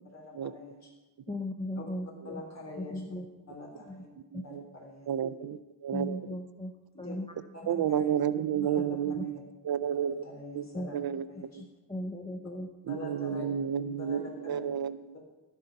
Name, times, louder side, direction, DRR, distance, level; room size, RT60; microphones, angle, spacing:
voice 1, 0.1-0.9 1.7-1.8 2.2-2.9 3.5-4.1 4.4-5.1 6.9-7.1 7.5-8.1 8.6-9.3 10.2-11.0 11.3-11.4 12.9-13.4 14.0-14.7, left 2 dB, 40° left, -1 dB, 3.3 m, -45 dB
voice 2, 1.3-2.4 2.8-3.6 3.9-4.0 4.3-4.4 5.9-6.7 7.0-7.3 7.7-7.8 8.5-9.3 10.7-10.9 11.6-12.7, left 1 dB, 15° left, 3 dB, 0.7 m, -38 dB
voice 3, 4.3-4.6 5.1-6.4 7.7-9.4 9.6-10.3 10.5-10.7 10.9-11.3 11.5-11.6 12.8-15.1, right 9 dB, 65° right, 15 dB, 0.5 m, -31 dB
12.0 x 9.9 x 5.2 m, 1.1 s
wide cardioid pair, 145°, 41 cm